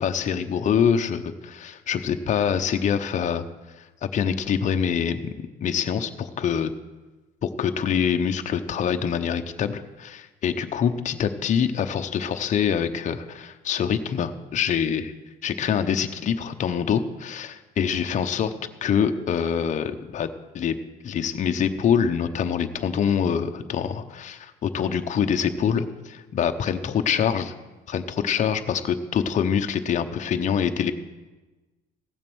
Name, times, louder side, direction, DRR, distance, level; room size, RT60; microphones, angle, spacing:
voice 1, 0.0-3.4 3.7-6.7 7.4-15.1 15.4-18.5 18.8-20.3 20.5-20.7 21.0-27.5 27.9-30.9, left 7 dB, 45° left, 7 dB, 0.8 m, -25 dB
16.0 x 7.4 x 6.2 m, 1.2 s
cardioid pair, 110°, 17 cm